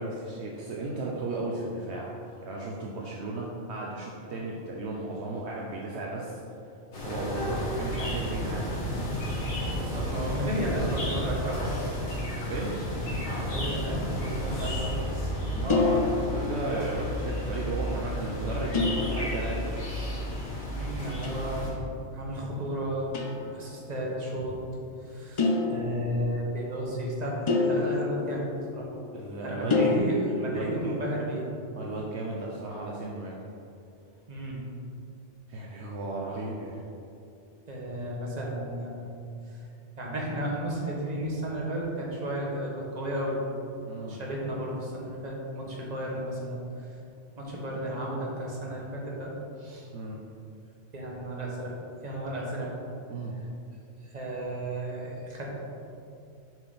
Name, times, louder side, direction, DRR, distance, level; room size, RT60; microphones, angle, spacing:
voice 1, 0.0-2.2 2.4-6.4 7.0-8.7 12.5-12.7 15.4-19.7 23.5-23.6 29.1-29.7 30.3-31.0 31.8-33.4 35.5-36.8 43.8-44.2 49.9-50.2 53.1-53.3, right 2 dB, 65° right, -2 dB, 1.0 m, -35 dB
sound 1, 6.9-21.7, equal, 70° left, 1.9 m, -32 dB
voice 2, 9.7-11.8 13.4-15.0 20.8-21.7 22.1-23.1 23.5-24.6 25.0-28.9 29.4-31.4 34.3-34.6 37.7-39.1 39.5-39.6 40.0-43.4 44.1-46.8 47.4-49.3 49.6-49.9 50.9-51.7 52.0-52.7 54.1-55.6, right 1 dB, 35° right, -3 dB, 1.4 m, -33 dB
sound 2, 15.7-17.0 18.7-19.9 21.2-21.7 23.1-23.6 25.4-26.5 27.5-29.1 29.7-30.0, left 3 dB, 35° left, 0.5 m, -28 dB
7.3 x 5.7 x 4.1 m, 2.6 s
omnidirectional pair, 1.3 m